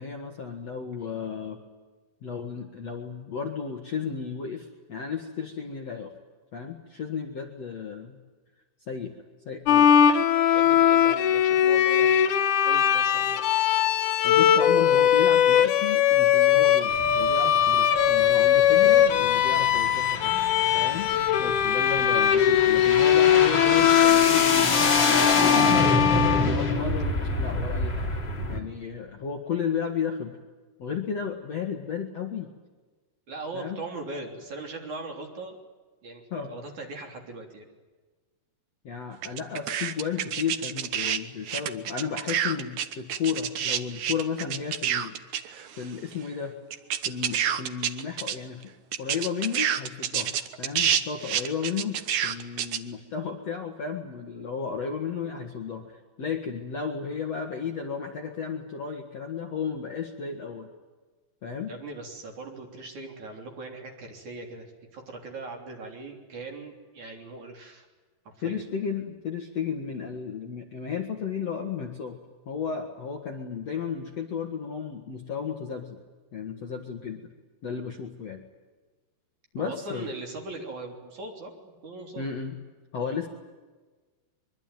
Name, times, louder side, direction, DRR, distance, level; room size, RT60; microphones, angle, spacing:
voice 1, 0.0-1.6 2.2-6.1 6.5-8.2 8.9-9.1 9.4-9.9 14.2-20.4 20.7-21.1 21.4-25.9 26.4-28.1 28.5-30.4 30.8-32.5 33.5-33.8 36.3-36.5 38.8-45.1 45.7-46.5 47.0-48.6 49.0-52.0 52.2-60.7 61.4-61.7 68.4-72.2 72.5-76.0 76.3-77.2 77.6-78.4 79.5-80.1 82.2-82.6 82.9-83.3, left 6 dB, 50° left, 3 dB, 2.3 m, -33 dB
Bowed string instrument, 9.7-27.1, left 9 dB, 70° left, 1.9 m, -20 dB
voice 2, 10.5-13.5 33.3-35.6 36.0-37.7 61.7-64.6 64.9-67.9 68.3-68.6 79.6-82.3, right 3 dB, 45° right, 2 dB, 4.5 m, -40 dB
sound 1, 16.9-28.6, left 3 dB, 30° left, 2.9 m, -28 dB
sound 2, 39.2-41.2 41.5-45.8 46.1-46.2 46.7-48.4 48.6-48.7 48.9-52.8, right 9 dB, 75° right, 1.7 m, -28 dB
24.0 x 23.5 x 9.3 m, 1.3 s
omnidirectional pair, 5.1 m